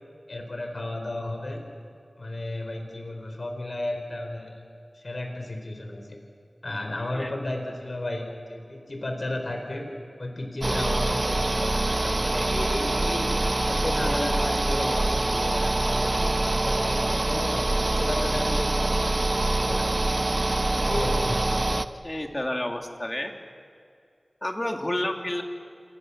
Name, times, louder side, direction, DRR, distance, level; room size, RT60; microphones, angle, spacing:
voice 1, 0.3-1.6 2.2-4.5 4.9-6.2 6.6-9.9 10.2-13.3 13.7-19.9 20.8-21.4, left 1 dB, 55° left, 4 dB, 4.7 m, -33 dB
sound 1, 10.6-21.8, right 2 dB, 45° right, 0.9 m, -25 dB
voice 2, 22.0-23.3 24.4-25.4, left 1 dB, 25° left, 4 dB, 2.6 m, -30 dB
28.5 x 27.5 x 7.3 m, 2.3 s
wide cardioid pair, 60°, 0 cm